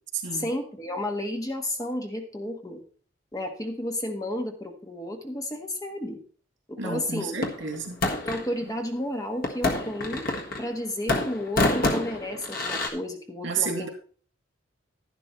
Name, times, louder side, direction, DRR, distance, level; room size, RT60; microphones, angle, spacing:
voice 1, 0.3-2.8 3.3-6.2 6.7-7.4 8.3-10.2 10.6-13.9, left 1 dB, 20° left, 3 dB, 1.4 m, -32 dB
voice 2, 6.8-8.0 13.4-13.9, right 5 dB, 80° right, 3 dB, 2.5 m, -31 dB
sound 1, 7.4-8.5 9.4-10.8 11.1-12.9, left 2 dB, 50° left, 1.6 m, -27 dB
11.0 x 10.5 x 3.1 m, 0.44 s
head